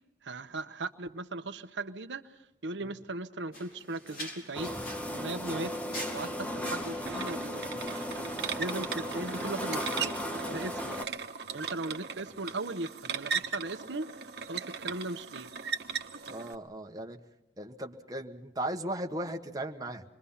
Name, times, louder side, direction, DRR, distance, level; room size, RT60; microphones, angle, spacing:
voice 1, 0.2-2.3 2.6-4.7 5.0-5.7 6.1-8.0 8.6-10.2 10.5-11.0 11.5-14.1 14.5-15.5, right 2 dB, 85° right, 8 dB, 1.0 m, -38 dB
sound 1, 3.5-7.5, equal, 55° left, 4.3 m, -44 dB
sound 2, 4.5-11.0, equal, 10° left, 1.3 m, -36 dB
sound 3, 7.1-16.5, right 6 dB, 60° right, 1.3 m, -38 dB
voice 2, 8.4-8.7 16.3-17.2 17.6-20.0, right 1 dB, 20° right, 2 dB, 1.4 m, -37 dB
27.5 x 22.5 x 5.8 m, 0.86 s
head